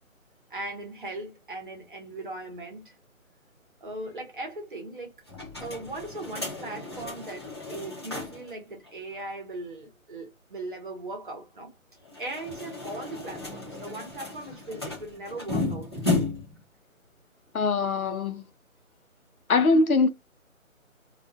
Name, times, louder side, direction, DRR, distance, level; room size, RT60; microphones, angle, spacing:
voice 1, 0.5-3.0 3.8-5.1 5.6-11.7 12.2-16.0, right 2 dB, 40° right, 0.8 m, -39 dB
sound 1, 5.3-8.5 8.8-8.9 9.2-9.3 12.0-16.6, left 3 dB, 20° left, 0.6 m, -33 dB
voice 2, 17.5-18.5 19.5-20.1, left 3 dB, 90° left, 0.7 m, -22 dB
2.3 x 2.2 x 2.6 m
figure-of-eight pair, 155°, 42 cm